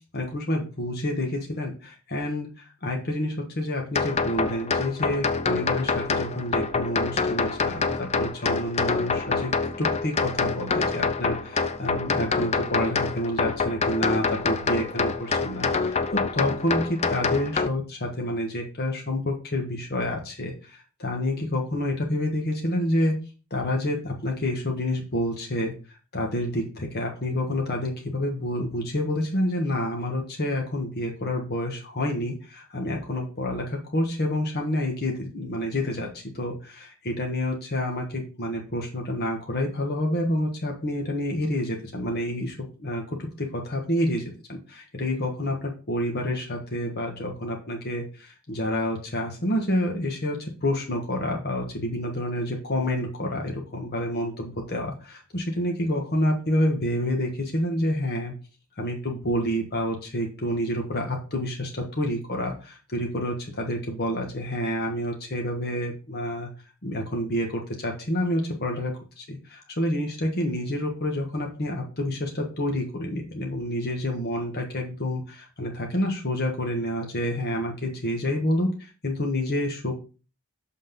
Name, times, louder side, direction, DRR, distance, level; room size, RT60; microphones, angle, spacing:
voice 1, 0.1-9.5 9.8-23.1 23.5-25.7 26.1-58.3 58.8-66.5 66.8-80.0, left 1 dB, 45° left, 1 dB, 1.3 m, -28 dB
sound 1, 3.9-17.7, left 4 dB, 30° left, 0.5 m, -26 dB
6.4 x 5.7 x 3.8 m, 0.34 s
head